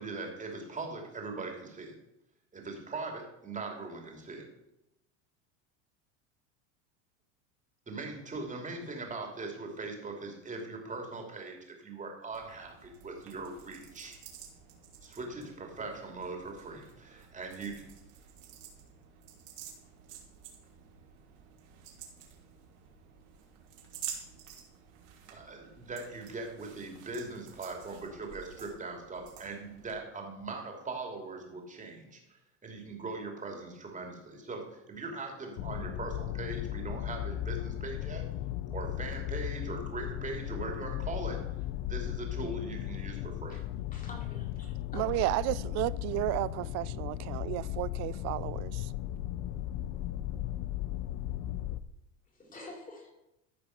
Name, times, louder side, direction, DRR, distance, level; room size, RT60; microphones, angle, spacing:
voice 1, 0.0-2.0 2.5-4.5 7.9-14.2 15.0-17.8 25.3-32.2 32.6-38.2 38.7-41.4 41.8-43.6, right 3 dB, 20° right, 2.9 m, -40 dB
sound 1, 12.3-29.9, right 8 dB, 65° right, 3.0 m, -50 dB
sound 2, 35.6-51.8, left 13 dB, 55° left, 0.6 m, -36 dB
voice 2, 43.9-45.1 52.4-53.1, left 2 dB, 20° left, 3.6 m, -48 dB
voice 3, 44.9-48.9, right 19 dB, 50° right, 0.5 m, -32 dB
14.0 x 5.1 x 5.8 m
supercardioid pair, 105°, 36 cm